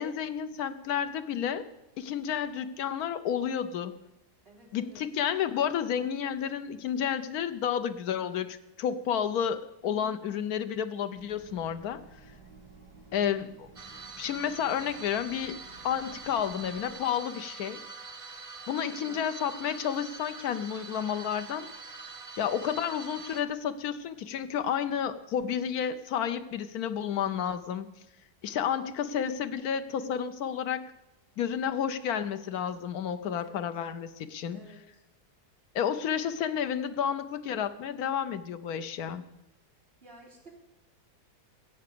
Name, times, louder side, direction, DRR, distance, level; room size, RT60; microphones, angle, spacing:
voice 1, 0.0-1.7 2.0-3.9 4.7-12.0 13.1-13.7 14.2-17.8 18.7-21.7 22.4-27.9 28.4-30.8 31.4-34.6 35.7-39.2, left 8 dB, 65° left, 11 dB, 1.2 m, -31 dB
voice 2, 4.4-5.0 9.8-10.2 18.9-19.2 33.4-33.9 34.5-35.0 40.0-40.5, right 1 dB, 30° right, -2 dB, 3.2 m, -53 dB
sound 1, 11.1-16.9, right 4 dB, 80° right, 4.0 m, -54 dB
sound 2, 13.8-23.4, right 4 dB, 45° right, 0.4 m, -44 dB
15.5 x 8.0 x 6.8 m, 0.93 s
omnidirectional pair, 1.9 m